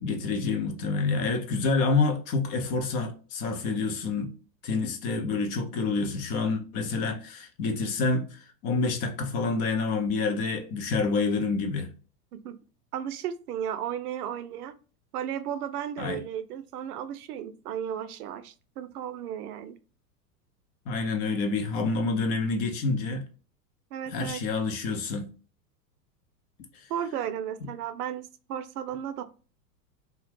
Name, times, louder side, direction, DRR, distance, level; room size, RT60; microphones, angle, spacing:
voice 1, 0.0-4.3 4.6-11.9 16.0-16.2 20.9-23.2 24.1-25.3, left 4 dB, 40° left, 0.8 m, -28 dB
voice 2, 12.9-14.7 15.1-19.8 23.9-24.4 26.9-29.2, right 9 dB, 70° right, 0.5 m, -34 dB
2.8 x 2.3 x 3.3 m
hypercardioid pair, 100°, 48 cm